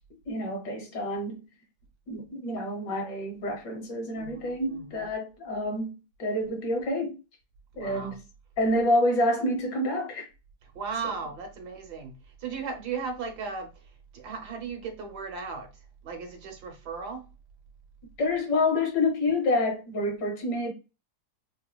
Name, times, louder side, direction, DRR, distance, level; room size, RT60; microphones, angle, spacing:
voice 1, 0.3-1.4 2.1-7.2 7.8-8.2 8.6-10.3 18.2-20.7, left 1 dB, 85° left, 1.8 m, -28 dB
voice 2, 4.1-5.1 7.7-8.1 10.7-13.7 14.1-15.7 16.0-17.2, right 5 dB, 70° right, 1.4 m, -36 dB
3.8 x 2.7 x 2.2 m
omnidirectional pair, 1.8 m